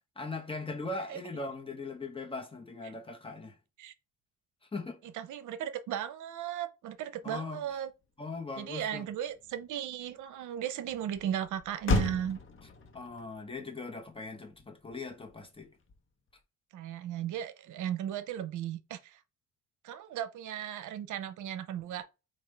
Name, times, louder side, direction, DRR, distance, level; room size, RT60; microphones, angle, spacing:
voice 1, 0.2-3.6 4.7-5.0 7.2-7.6 8.2-9.1 12.9-15.7, left 3 dB, 20° left, 1.1 m, -40 dB
voice 2, 5.1-7.9 8.6-12.4 16.7-19.2 19.8-22.1, right 10 dB, 80° right, 0.7 m, -36 dB
Motor vehicle (road), 7.7-16.4, left 3 dB, 40° left, 1.0 m, -38 dB
5.0 x 2.5 x 3.3 m
cardioid pair, 90°, 30 cm